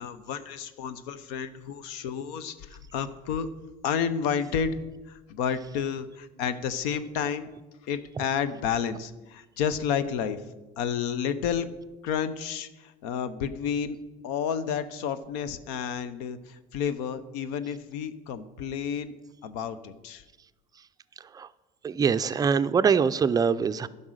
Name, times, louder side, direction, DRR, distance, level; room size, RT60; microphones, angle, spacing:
voice 1, 0.0-3.5 3.8-4.8 5.1-7.5 7.8-10.4 10.8-11.7 12.0-14.0 14.2-19.1 19.4-20.2, left 7 dB, 80° left, 13 dB, 0.7 m, -31 dB
voice 2, 21.8-23.9, right 6 dB, 20° right, 12 dB, 0.4 m, -24 dB
11.0 x 5.4 x 6.4 m, 1.1 s
supercardioid pair, 105°, 19 cm